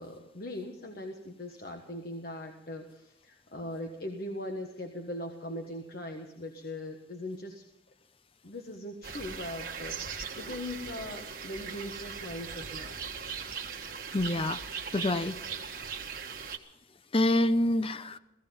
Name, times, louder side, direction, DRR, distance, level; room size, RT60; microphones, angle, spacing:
voice 1, 0.0-7.6 8.4-13.0, left 1 dB, 55° left, 3 dB, 1.4 m, -40 dB
sound 1, 9.0-16.6, right 6 dB, 50° right, 1.4 m, -39 dB
voice 2, 14.1-14.6 14.9-15.4 17.1-18.2, left 1 dB, 30° left, 13 dB, 0.7 m, -26 dB
16.5 x 16.5 x 5.4 m, 0.88 s
head